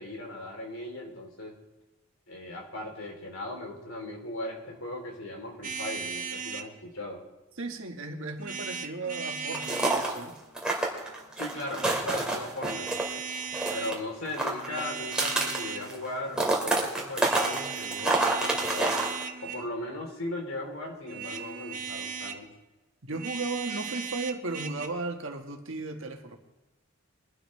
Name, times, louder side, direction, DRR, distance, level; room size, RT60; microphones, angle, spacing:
voice 1, 0.0-1.6 2.3-7.2 11.4-13.0 13.7-19.0 19.4-22.5, left 1 dB, 75° left, 1 dB, 3.4 m, -38 dB
sound 1, 5.6-6.7 8.4-10.0 11.5-12.0 12.6-14.0 14.6-15.9 17.3-19.7 21.1-22.4 23.1-24.9, right 6 dB, 40° right, 0.8 m, -37 dB
voice 2, 7.6-10.3 23.0-26.4, right 3 dB, 70° right, 3 dB, 1.6 m, -35 dB
sound 2, 9.5-10.2 10.6-13.1 13.4-14.0 14.2-16.1 16.3-19.2, right 2 dB, 5° right, 2.3 m, -28 dB
22.5 x 12.0 x 3.3 m, 1.1 s
head